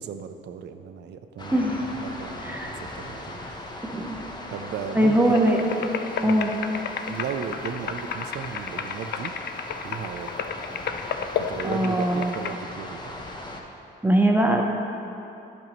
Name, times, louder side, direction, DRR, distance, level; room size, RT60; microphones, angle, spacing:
voice 1, 0.0-1.7 2.0-3.7 4.5-5.2 6.2-6.4 7.1-9.4 9.8-10.3 11.4-13.0, right 7 dB, 60° right, 7 dB, 0.5 m, -35 dB
sound 1, 1.4-13.6, left 1 dB, 20° left, 0.9 m, -38 dB
voice 2, 1.5-1.9 2.4-2.8 3.8-4.2 4.9-5.6 6.2-6.5 11.6-12.3 14.0-14.6, right 1 dB, 10° right, 0 dB, 0.7 m, -21 dB
sound 2, 5.3-12.5, left 7 dB, 55° left, 0.4 m, -33 dB
13.5 x 5.4 x 3.0 m, 2.8 s
cardioid pair, 90°, 20 cm